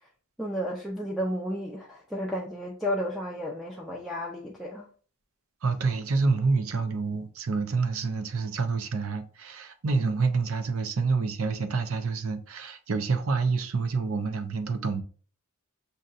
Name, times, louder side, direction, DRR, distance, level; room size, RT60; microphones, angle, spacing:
voice 1, 0.4-4.9, equal, ahead, 0.5 m, -32 dB
voice 2, 5.6-15.0, right 4 dB, 80° right, 0.6 m, -27 dB
6.4 x 2.8 x 2.4 m
head